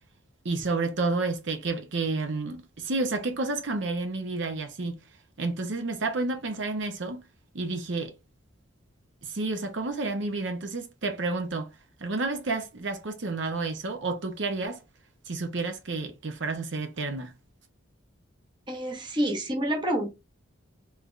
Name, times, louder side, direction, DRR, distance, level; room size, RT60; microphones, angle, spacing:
voice 1, 0.4-5.0 5.4-7.2 7.5-8.1 9.2-11.7 12.0-14.8 15.3-17.3, right 3 dB, 60° right, 0.7 m, -30 dB
voice 2, 18.7-20.1, right 1 dB, 20° right, 0.7 m, -28 dB
3.3 x 3.3 x 2.4 m
head